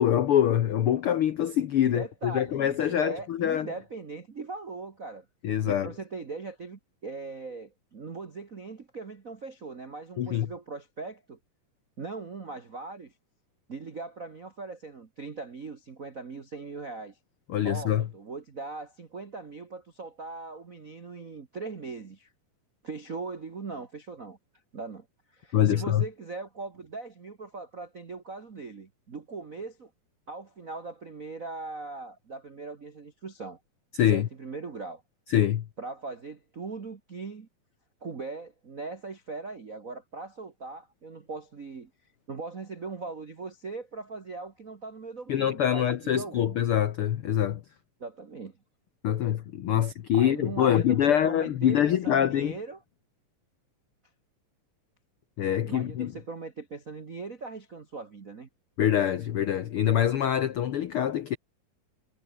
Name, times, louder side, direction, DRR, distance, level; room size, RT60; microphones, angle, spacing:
voice 1, 0.0-3.7 5.4-5.9 10.2-10.5 17.5-18.1 25.5-26.0 34.0-34.3 35.3-35.6 45.3-47.6 49.0-52.6 55.4-56.1 58.8-61.4, left 10 dB, 85° left, 1.2 m, -25 dB
voice 2, 1.8-5.2 5.7-11.4 12.0-13.1 13.7-17.2 17.6-22.3 22.8-24.4 24.7-25.1 25.3-29.9 30.3-33.6 34.1-35.0 35.8-37.5 38.0-41.9 42.3-46.6 48.0-48.6 49.7-49.8 50.1-52.8 55.6-58.5, right 4 dB, 55° right, 0.9 m, -40 dB
omnidirectional pair, 4.0 m